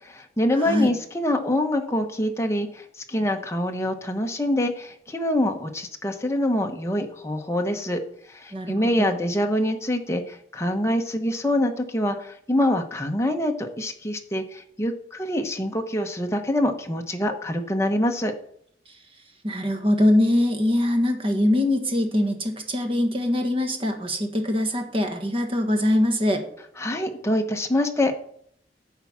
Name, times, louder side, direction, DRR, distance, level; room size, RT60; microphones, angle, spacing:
voice 1, 0.0-8.0 8.3-18.3 26.8-28.1, left 1 dB, 15° left, 4 dB, 1.0 m, -25 dB
voice 2, 0.6-0.9 8.5-9.2 18.9-19.0 19.4-26.5, left 1 dB, 30° right, 5 dB, 1.5 m, -23 dB
10.5 x 4.7 x 7.2 m, 0.66 s
head